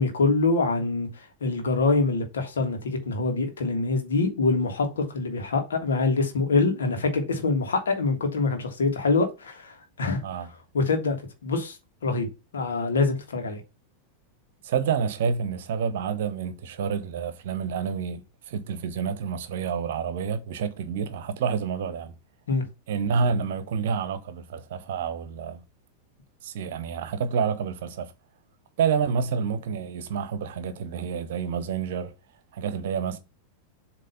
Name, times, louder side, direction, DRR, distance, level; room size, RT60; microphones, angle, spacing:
voice 1, 0.0-10.2 10.7-11.2 11.4-11.8 12.0-12.3 12.5-13.6 22.5-22.6, left 3 dB, 65° left, 1.6 m, -25 dB
voice 2, 14.6-22.1 22.9-25.6 26.4-28.1 28.8-32.1 32.5-33.2, right 6 dB, 55° right, 0.9 m, -28 dB
7.7 x 3.0 x 5.4 m
figure-of-eight pair, 90°, 0 cm